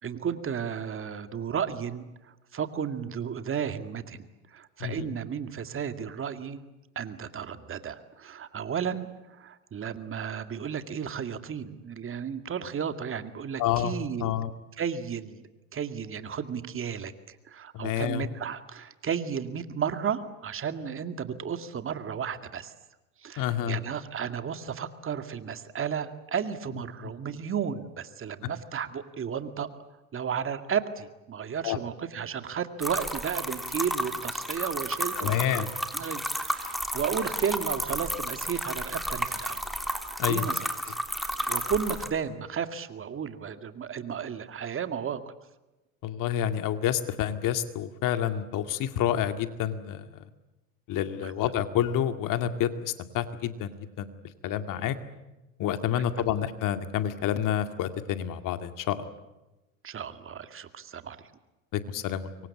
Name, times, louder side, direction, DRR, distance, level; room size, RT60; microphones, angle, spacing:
voice 1, 0.0-6.6 7.0-14.4 14.8-22.7 23.2-29.7 30.1-35.7 35.9-39.6 40.3-40.6 40.9-41.0 41.5-45.2 51.2-51.3 55.8-56.0 59.8-61.3, right 7 dB, 30° right, 9 dB, 2.2 m, -33 dB
voice 2, 13.6-13.9 14.2-14.5 17.7-18.2 23.4-23.8 27.0-27.1 31.6-31.8 35.2-35.7 40.2-40.5 46.0-50.1 50.9-54.1 54.4-55.0 55.6-59.1 61.7-62.3, left 10 dB, 50° left, 9 dB, 2.3 m, -28 dB
sound 1, 32.8-42.1, equal, ahead, 3.3 m, -32 dB
26.0 x 23.5 x 8.5 m, 1.0 s
hypercardioid pair, 85°, 40 cm